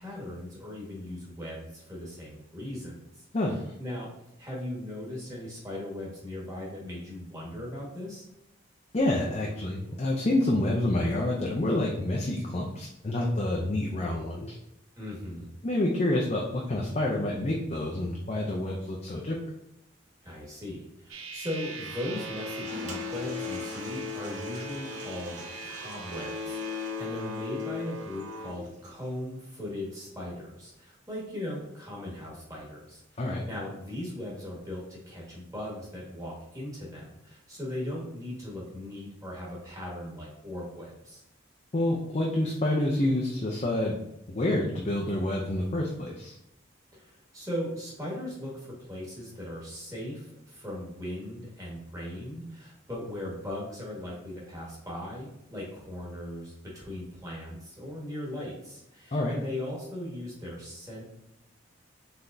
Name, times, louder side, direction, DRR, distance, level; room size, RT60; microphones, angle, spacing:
voice 1, 0.0-3.2 3.8-4.1 4.4-8.2 15.0-15.5 20.2-41.2 46.9-61.0, left 1 dB, 15° right, -5 dB, 1.5 m, -38 dB
voice 2, 8.9-14.6 15.6-19.4 33.2-33.5 41.7-44.0 44.3-46.4 59.1-59.4, left 1 dB, 35° left, -2 dB, 0.5 m, -28 dB
sound 1, 21.1-28.5, left 3 dB, 85° right, 0.7 m, -37 dB
Toilet flush, 22.2-29.1, right 2 dB, 35° right, 0.7 m, -47 dB
5.8 x 3.4 x 2.6 m, 0.85 s
head